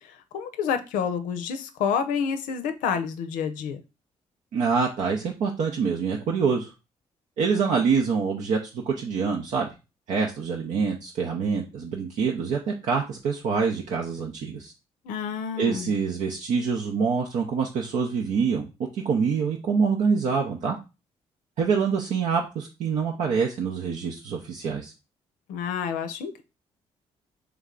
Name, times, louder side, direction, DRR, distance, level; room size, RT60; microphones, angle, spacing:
voice 1, 0.0-3.8 15.0-15.9 25.5-26.4, left 7 dB, 80° left, 0.5 m, -29 dB
voice 2, 4.5-6.7 7.4-8.6 8.8-9.7 10.1-14.7 15.6-18.7 18.9-20.8 21.6-24.9, right 5 dB, 70° right, 0.6 m, -25 dB
3.4 x 3.1 x 3.7 m
supercardioid pair, 55°, 13 cm